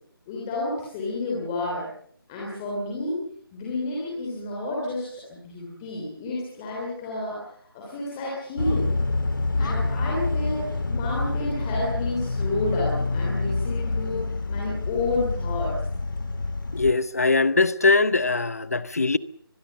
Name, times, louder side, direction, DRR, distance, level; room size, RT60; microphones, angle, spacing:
voice 1, 0.3-1.9 2.3-3.2 3.5-7.5 7.7-8.9 9.6-15.8, left 2 dB, 10° left, 3.1 m, -30 dB
sound 1, 8.6-16.9, left 3 dB, 55° left, 2.2 m, -27 dB
voice 2, 16.7-19.2, left 3 dB, 40° left, 0.8 m, -21 dB
23.5 x 21.0 x 6.7 m
figure-of-eight pair, 175°, 13 cm